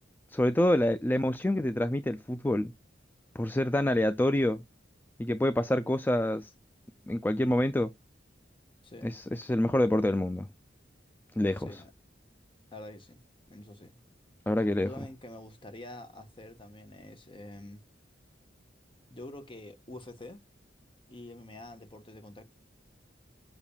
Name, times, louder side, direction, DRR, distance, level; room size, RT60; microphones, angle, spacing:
voice 1, 0.3-2.7 3.3-4.6 5.2-6.5 7.1-7.9 9.0-10.5 11.3-11.8 14.5-14.9, left 1 dB, 10° left, 0.4 m, -27 dB
voice 2, 8.8-9.2 11.6-11.9 12.7-13.2 13.5-13.9 14.8-17.8 19.1-20.4 21.1-22.4, left 1 dB, 30° left, 1.2 m, -46 dB
7.1 x 5.8 x 2.3 m
head